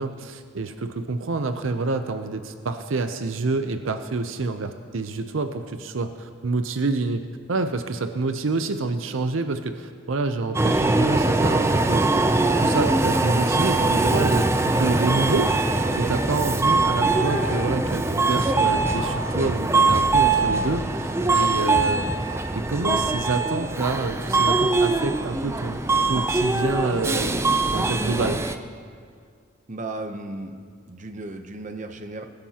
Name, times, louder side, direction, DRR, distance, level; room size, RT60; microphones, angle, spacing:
voice 1, 0.0-12.2 12.6-15.8 16.1-25.8 26.0-28.4, right 3 dB, 75° right, 8 dB, 0.6 m, -27 dB
Subway metro underground, 10.5-28.6, right 3 dB, 15° right, 0.4 m, -22 dB
voice 2, 29.7-32.2, right 2 dB, 35° right, 6 dB, 0.8 m, -35 dB
22.0 x 12.0 x 2.9 m, 2.1 s
head